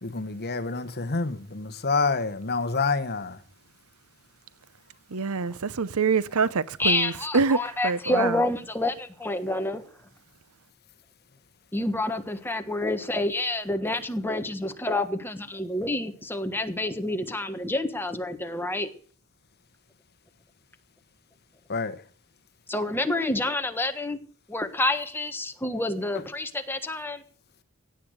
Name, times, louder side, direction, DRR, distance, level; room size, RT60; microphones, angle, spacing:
voice 1, 0.0-3.4 21.7-22.0, left 4 dB, 50° left, 1.2 m, -27 dB
voice 2, 5.1-7.6 7.8-8.4, right 5 dB, 85° right, 0.7 m, -25 dB
voice 3, 6.8-9.8 11.7-18.9 22.7-24.2 24.5-27.2, left 2 dB, 10° left, 1.4 m, -28 dB
17.0 x 9.0 x 6.5 m
head